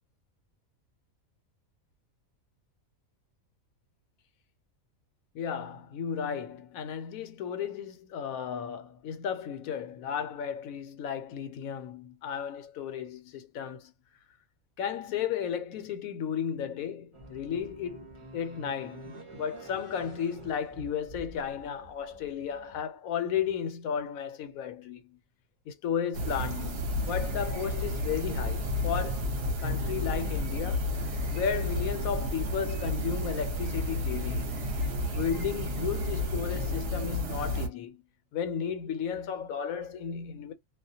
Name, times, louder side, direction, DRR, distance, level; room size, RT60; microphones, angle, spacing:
voice 1, 5.3-13.9 14.8-25.2 25.7-29.3 29.6-30.9 31.3-34.6 35.1-38.0 38.3-40.5, left 8 dB, 80° left, 1.0 m, -34 dB
sound 1, 17.1-22.8, right 3 dB, 35° right, 0.5 m, -49 dB
sound 2, 26.1-37.7, left 1 dB, 55° right, 0.8 m, -31 dB
2.4 x 2.1 x 2.6 m
omnidirectional pair, 1.5 m